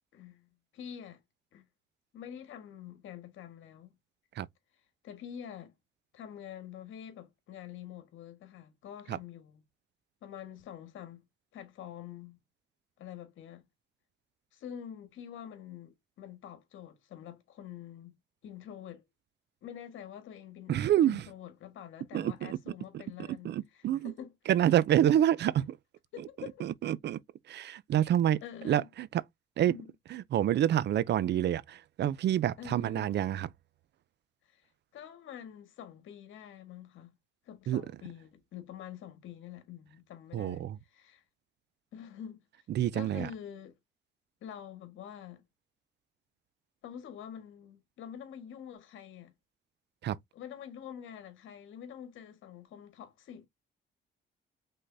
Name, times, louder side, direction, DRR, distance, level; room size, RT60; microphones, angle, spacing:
voice 1, 0.1-1.2 1.5-1.7 2.1-3.9 5.0-5.7 6.1-9.6 10.2-11.2 11.5-12.4 13.0-13.7 14.5-18.1 18.4-19.0 19.6-24.3 26.1-26.7 28.4-28.9 29.7-29.9 32.6-33.1 34.4-37.1 37.4-41.2 41.9-42.7 42.9-43.8 44.4-45.4 46.8-49.3 50.3-53.5, left 9 dB, 80° left, 1.6 m, -46 dB
voice 2, 20.7-21.3 22.1-22.6 22.9-23.0 23.4-24.1 24.5-25.8 26.6-27.2 27.5-29.2 29.6-29.7 30.1-33.5 37.7-37.8 40.3-40.8 42.7-43.3 50.0-50.2, right 11 dB, 60° right, 0.5 m, -28 dB
5.4 x 3.7 x 2.6 m
cardioid pair, 90°, 20 cm